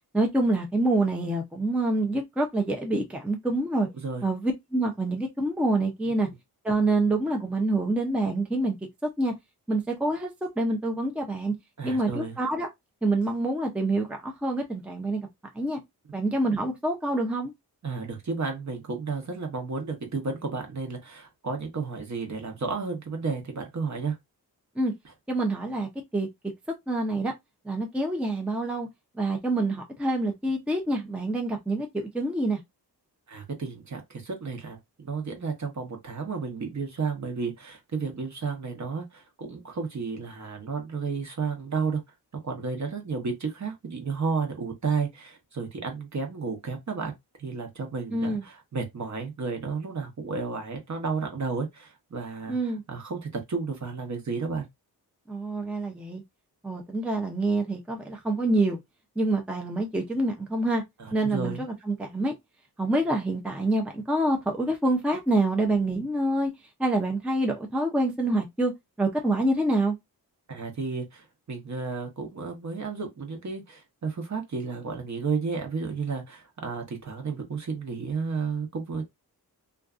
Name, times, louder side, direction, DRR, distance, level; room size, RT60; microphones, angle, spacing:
voice 1, 0.1-3.9 4.2-6.3 6.6-8.7 9.2-9.3 9.7-11.5 11.8-12.7 13.0-15.3 15.5-15.8 16.1-17.5 24.8-24.9 25.3-26.3 26.9-27.3 27.7-28.9 29.2-32.6 48.1-48.4 52.5-52.8 55.3-56.2 56.6-58.8 59.2-60.8 61.1-62.3 62.8-66.5 66.8-68.7 69.0-70.0, right 2 dB, 5° right, 0.5 m, -26 dB
voice 2, 4.0-4.3 6.0-6.1 11.8-12.4 17.8-24.2 33.3-42.0 42.4-47.1 47.4-52.6 52.9-54.7 61.0-61.6 70.5-79.1, right 4 dB, 45° right, 0.9 m, -32 dB
2.5 x 2.3 x 2.4 m
wide cardioid pair, 105°, 39 cm